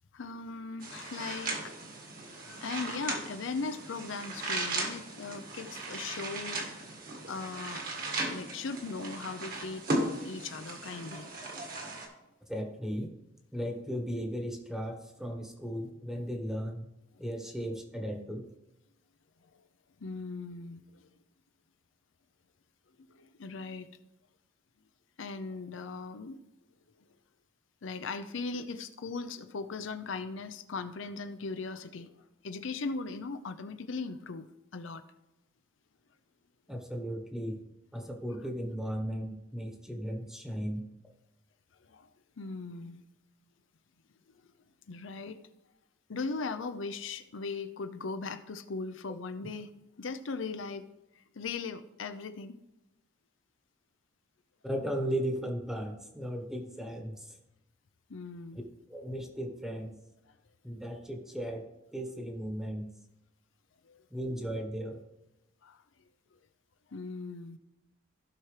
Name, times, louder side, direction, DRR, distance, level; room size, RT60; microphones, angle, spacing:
voice 1, 0.1-1.7 2.3-6.6 7.3-7.8 8.3-9.9 10.2-11.3 20.0-21.1 23.1-23.9 25.2-26.4 27.8-34.5 34.7-35.0 36.7-36.8 41.8-42.1 42.4-43.0 44.9-45.4 46.1-50.9 51.1-52.6 58.1-58.6 63.8-64.0 65.6-65.8 66.9-67.6, left 4 dB, 75° left, 9 dB, 0.6 m, -39 dB
sound 1, 0.8-12.1, right 2 dB, 45° right, 1.7 m, -37 dB
voice 2, 12.5-13.1 13.5-16.9 17.2-18.4 36.7-37.6 37.9-40.8 54.6-57.4 58.9-60.0 60.6-62.9 64.1-65.0, equal, 5° right, 2 dB, 1.1 m, -36 dB
15.5 x 6.0 x 3.2 m, 0.95 s
head